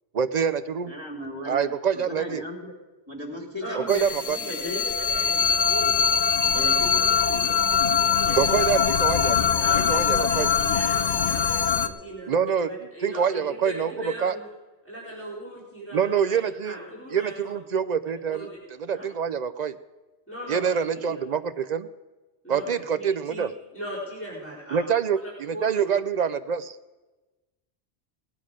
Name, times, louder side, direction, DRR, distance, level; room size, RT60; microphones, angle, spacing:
voice 1, 0.1-0.9 1.4-2.4 3.7-4.4 8.4-9.4 9.8-10.5 12.3-12.7 13.0-13.9 14.2-14.4 15.9-16.8 17.1-18.5 18.8-19.8 20.5-21.9 22.5-23.5 24.7-26.8, right 7 dB, 55° right, 11 dB, 0.5 m, -25 dB
voice 2, 0.9-2.7 3.1-4.8 6.5-7.1, left 1 dB, 25° right, 1 dB, 2.3 m, -36 dB
voice 3, 3.6-8.6 9.2-14.5 14.8-17.5 18.3-18.6 18.9-19.0 20.3-21.1 22.4-23.4 23.7-26.0, right 1 dB, 10° left, -8 dB, 4.6 m, -39 dB
sound 1, 3.9-11.9, left 7 dB, 45° left, 0.7 m, -22 dB
19.0 x 9.5 x 5.0 m, 1.2 s
omnidirectional pair, 1.1 m